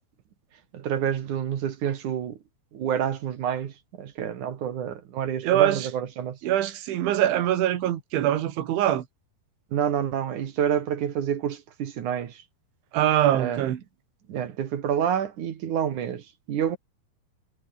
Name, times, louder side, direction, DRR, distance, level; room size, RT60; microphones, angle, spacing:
voice 1, 0.7-2.4 2.7-6.4 9.7-12.4 13.3-13.6 14.3-16.8, right 9 dB, 55° right, 2.6 m, -28 dB
voice 2, 5.4-5.9 6.4-9.1 12.9-13.8, right 12 dB, 90° right, 4.4 m, -23 dB
omnidirectional pair, 5.2 m